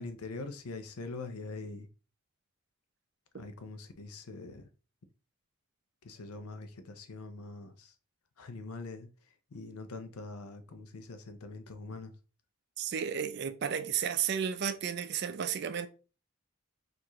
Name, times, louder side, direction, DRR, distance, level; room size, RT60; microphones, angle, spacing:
voice 1, 0.0-1.9 3.4-4.6 6.0-7.9 8.4-12.1, left 3 dB, 90° left, 0.6 m, -43 dB
voice 2, 12.8-15.9, right 8 dB, 50° right, 0.3 m, -33 dB
4.5 x 2.5 x 2.9 m
head